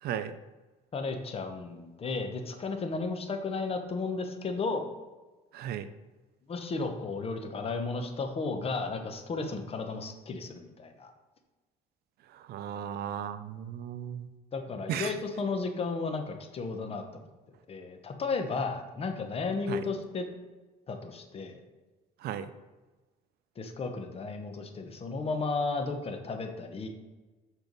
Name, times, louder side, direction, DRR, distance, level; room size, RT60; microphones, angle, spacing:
voice 1, 0.0-0.3 5.5-5.9 12.3-14.3 14.9-15.1 19.7-19.8 22.2-22.5, right 9 dB, 70° right, 11 dB, 0.5 m, -35 dB
voice 2, 0.9-4.8 6.5-11.1 14.5-17.2 17.7-20.2 20.9-21.6 23.6-26.9, left 4 dB, 35° left, 5 dB, 0.9 m, -34 dB
6.9 x 4.5 x 4.0 m, 1.2 s
cardioid pair, 110°, 17 cm